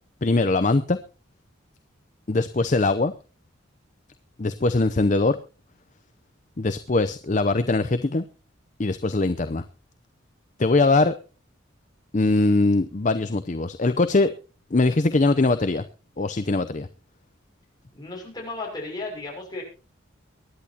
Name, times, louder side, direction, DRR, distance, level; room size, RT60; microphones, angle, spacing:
voice 1, 0.2-1.0 2.3-3.1 4.4-5.4 6.6-8.2 8.8-9.6 10.6-11.1 12.1-14.3 14.7-15.8 16.2-16.9, left 2 dB, 40° left, 11 dB, 0.6 m, -21 dB
voice 2, 17.9-19.6, left 2 dB, 20° left, -1 dB, 6.2 m, -34 dB
23.5 x 11.0 x 2.9 m, 0.34 s
head